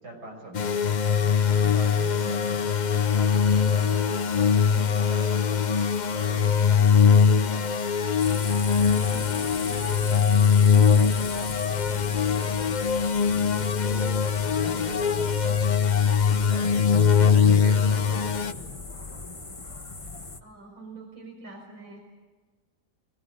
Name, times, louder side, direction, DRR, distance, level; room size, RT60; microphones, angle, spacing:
voice 1, 0.0-0.9 1.4-5.6 6.1-7.9 8.8-12.9 13.2-13.6 13.8-15.8 16.1-18.7, right 1 dB, 70° right, 1 dB, 7.0 m, -42 dB
sound 1, 0.5-18.5, left 6 dB, 50° left, 0.5 m, -22 dB
sound 2, 8.2-20.4, left 3 dB, 20° left, 1.2 m, -39 dB
voice 2, 20.4-22.0, right 3 dB, 50° right, 1 dB, 4.8 m, -44 dB
25.5 x 19.5 x 8.3 m, 1.4 s
omnidirectional pair, 1.8 m